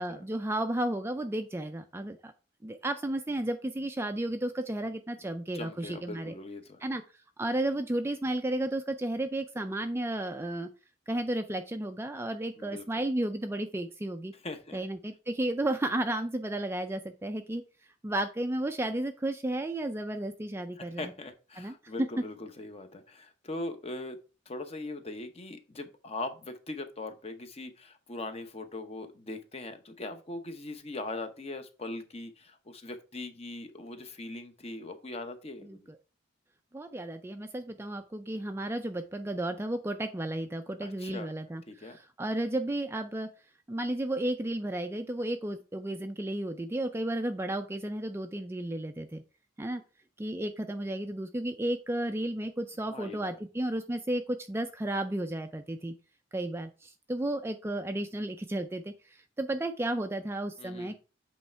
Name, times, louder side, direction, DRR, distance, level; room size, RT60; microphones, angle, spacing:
voice 1, 0.0-2.3 2.6-6.3 6.8-7.0 7.4-10.7 11.1-14.3 14.7-17.6 18.0-21.1 21.6-22.1 35.6-36.0 36.7-43.3 43.7-49.2 49.6-49.8 50.2-55.9 56.3-60.9, right 1 dB, 10° right, 7 dB, 0.3 m, -33 dB
voice 2, 5.5-6.8 12.6-12.8 14.4-14.8 20.8-24.2 24.5-35.9 40.8-41.3 41.7-42.0 52.9-53.3 60.6-60.9, left 2 dB, 30° left, 8 dB, 0.7 m, -40 dB
8.1 x 3.2 x 4.4 m, 0.33 s
head